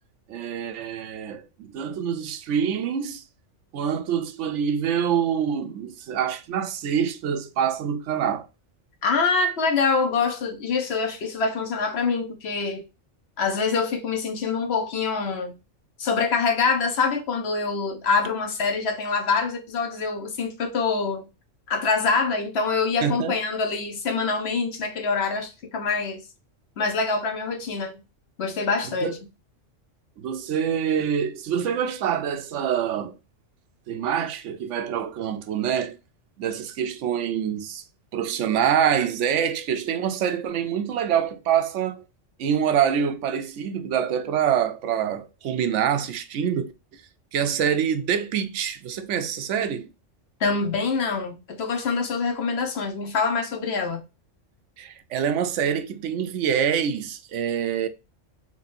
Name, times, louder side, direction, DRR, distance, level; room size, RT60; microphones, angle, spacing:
voice 1, 0.3-3.2 3.7-8.5 23.0-23.4 28.8-29.1 30.2-33.2 33.9-36.0 36.4-37.8 38.1-42.0 42.4-47.0 47.3-49.9 54.8-57.9, right 8 dB, 75° right, 0.9 m, -25 dB
voice 2, 9.0-12.8 13.4-15.6 16.0-21.3 21.7-26.2 26.8-28.0 28.4-29.2 50.4-54.0, left 4 dB, 60° left, 1.1 m, -25 dB
4.0 x 3.0 x 2.6 m
omnidirectional pair, 1.3 m